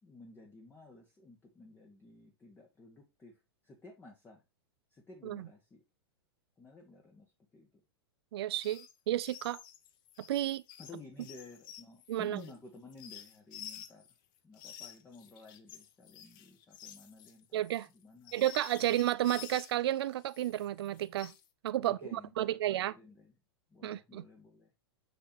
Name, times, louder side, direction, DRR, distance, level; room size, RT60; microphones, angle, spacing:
voice 1, 0.0-4.4 4.9-5.8 6.6-7.8 10.8-14.1 14.4-17.6 17.9-18.3 18.8-19.1 21.8-23.3 23.7-24.7, left 3 dB, 15° left, 1.6 m, -53 dB
voice 2, 8.3-9.6 10.3-10.6 12.1-12.4 17.5-17.9 18.3-21.3 21.6-22.9 23.8-24.2, right 13 dB, 70° right, 0.4 m, -32 dB
sound 1, 8.5-8.9 9.2-14.1 14.5-19.8 20.2-21.5, left 11 dB, 55° left, 1.2 m, -51 dB
6.6 x 6.4 x 2.9 m
hypercardioid pair, 120°, 14 cm